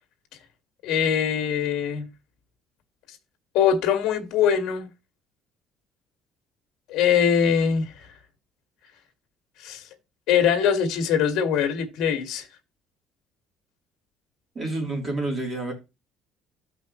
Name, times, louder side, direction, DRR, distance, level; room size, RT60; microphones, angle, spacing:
voice 1, 0.8-2.1 3.5-4.9 6.9-8.1 9.6-9.8 10.3-12.5, left 8 dB, 65° left, 1.8 m, -22 dB
voice 2, 14.5-15.7, right 2 dB, 25° right, 3.0 m, -28 dB
13.5 x 5.5 x 3.0 m
cardioid pair, 175°, 0 cm